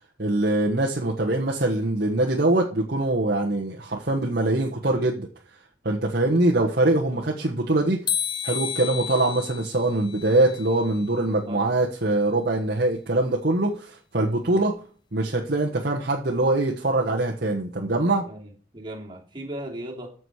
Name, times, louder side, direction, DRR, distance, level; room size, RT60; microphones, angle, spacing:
voice 1, 0.2-5.3 5.8-8.0 8.4-14.7 15.1-18.2, right 2 dB, 55° right, 1.3 m, -23 dB
sound 1, 8.1-11.2, left 8 dB, 25° left, 0.7 m, -32 dB
voice 2, 18.3-20.1, right 1 dB, 25° right, 2.8 m, -37 dB
14.0 x 6.2 x 4.9 m
head